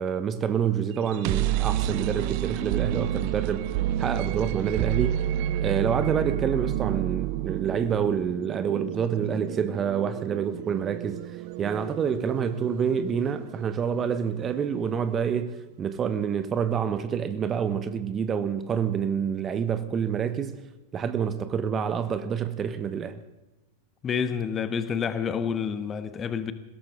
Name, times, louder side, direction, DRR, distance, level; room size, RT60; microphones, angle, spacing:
voice 1, 0.0-3.7 4.0-5.3 5.6-20.6 20.9-23.2, right 7 dB, 25° right, 1.1 m, -27 dB
sound 1, 1.0-14.8, right 12 dB, 45° right, 0.7 m, -30 dB
voice 2, 24.0-26.5, left 7 dB, 25° left, 1.2 m, -28 dB
20.5 x 17.5 x 3.7 m
figure-of-eight pair, 90°, 0 cm